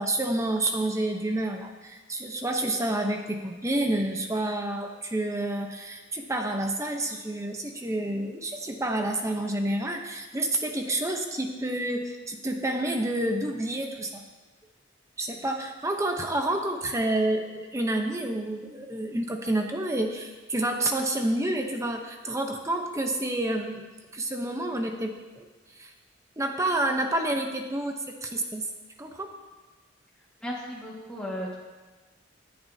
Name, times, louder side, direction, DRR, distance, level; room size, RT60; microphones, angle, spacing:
voice 1, 0.0-14.2 15.2-23.8 24.1-25.5 25.8-25.9 26.4-28.7 29.0-29.3, right 1 dB, 15° right, 3 dB, 0.8 m, -29 dB
voice 2, 30.4-31.6, equal, 5° left, -6 dB, 1.8 m, -35 dB
19.0 x 10.5 x 2.8 m, 1.3 s
head